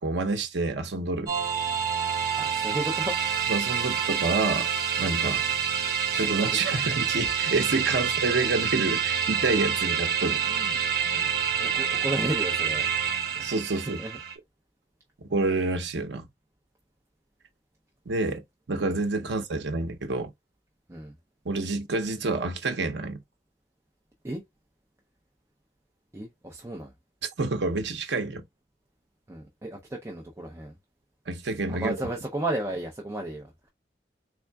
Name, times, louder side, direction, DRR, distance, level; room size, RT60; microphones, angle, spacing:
voice 1, 0.0-1.3 3.5-4.7 5.0-5.4 6.1-10.4 13.4-14.0 15.2-16.3 18.1-18.4 18.7-20.3 21.4-23.2 27.4-28.4 31.3-31.9, right 3 dB, 80° right, 0.7 m, -28 dB
sound 1, 1.3-14.4, right 7 dB, 60° right, 1.1 m, -27 dB
voice 2, 2.4-3.1 5.2-5.3 6.1-6.4 6.7-6.8 10.5-10.8 11.0-12.9 14.0-14.2 20.9-21.1 24.2-24.4 26.1-26.9 29.3-30.7 31.7-33.7, right 1 dB, 15° right, 0.5 m, -34 dB
3.6 x 3.4 x 2.2 m
head